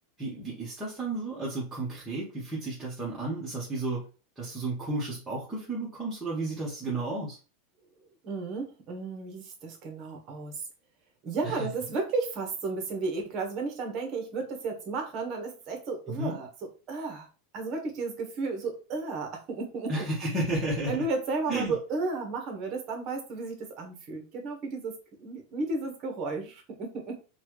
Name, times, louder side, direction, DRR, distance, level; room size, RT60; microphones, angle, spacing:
voice 1, 0.2-4.0 4.4-7.4 11.4-11.7 16.1-16.3 19.9-21.0 21.5-21.7, right 2 dB, 10° right, -7 dB, 1.1 m, -32 dB
voice 2, 8.2-10.6 11.2-17.3 17.5-19.9 20.9-27.2, right 3 dB, 35° right, 4 dB, 1.1 m, -33 dB
4.1 x 2.3 x 3.1 m, 0.34 s
supercardioid pair, 145°, 0 cm